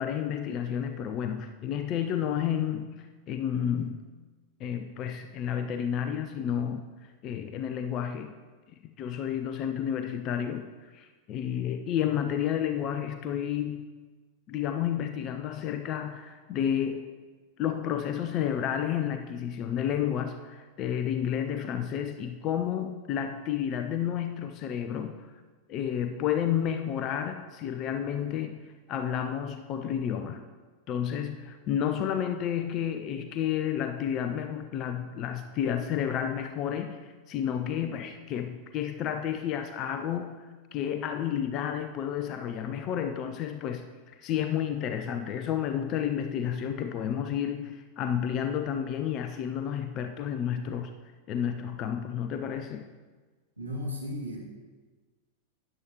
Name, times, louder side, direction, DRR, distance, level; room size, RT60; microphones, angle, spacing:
voice 1, 0.0-2.9 3.3-4.0 4.6-6.9 7.2-8.3 9.0-10.6 10.9-13.9 14.5-17.1 17.6-25.2 25.7-28.6 28.9-30.4 30.9-40.3 40.7-43.9 44.2-50.9 51.3-52.8, left 9 dB, 35° left, 7 dB, 0.6 m, -31 dB
voice 2, 53.6-54.4, left 1 dB, 85° right, -3 dB, 2.2 m, -35 dB
13.0 x 10.0 x 3.0 m, 1.4 s
figure-of-eight pair, 90°, 0 cm